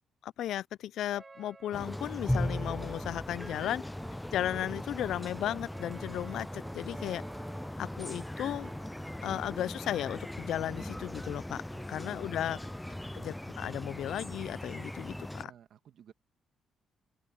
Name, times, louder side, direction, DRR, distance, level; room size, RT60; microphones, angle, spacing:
voice 1, 0.2-3.8 4.3-7.2 7.8-8.7 9.2-11.6 11.9-12.6 13.1-15.5, left 11 dB, 75° left, 0.5 m, -35 dB
Brass instrument, 1.1-9.7, right 3 dB, 25° right, 1.1 m, -51 dB
sound 1, 1.7-15.4, left 1 dB, 5° left, 0.4 m, -38 dB
sound 2, 2.1-13.3, left 7 dB, 55° left, 3.7 m, -65 dB
voice 2, 11.7-12.7 15.4-16.1, right 9 dB, 70° right, 2.2 m, -57 dB
open air
cardioid pair, 90°, 0 cm